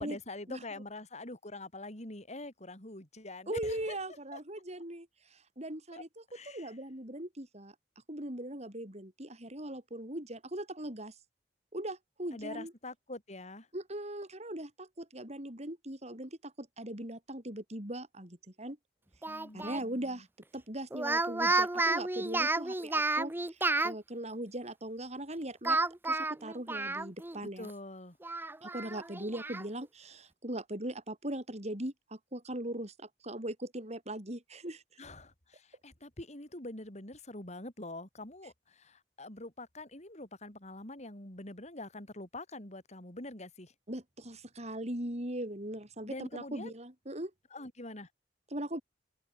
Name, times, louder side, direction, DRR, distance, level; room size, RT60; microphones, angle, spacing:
voice 1, 0.0-4.0 4.3-4.4 5.9-6.7 12.3-13.7 19.3-20.3 27.4-28.2 35.0-43.7 46.1-46.7 47.5-48.1, left 2 dB, 40° left, 5.9 m, -45 dB
voice 2, 3.5-7.7 8.1-11.2 11.7-12.7 13.7-18.8 19.5-20.3 20.5-25.8 26.0-27.7 28.6-34.8 43.9-47.3 48.5-48.8, right 1 dB, 40° right, 6.9 m, -40 dB
Speech, 19.2-19.8 20.9-23.9 25.6-27.4 27.7-27.8 28.2-29.6, right 2 dB, 10° right, 0.7 m, -31 dB
head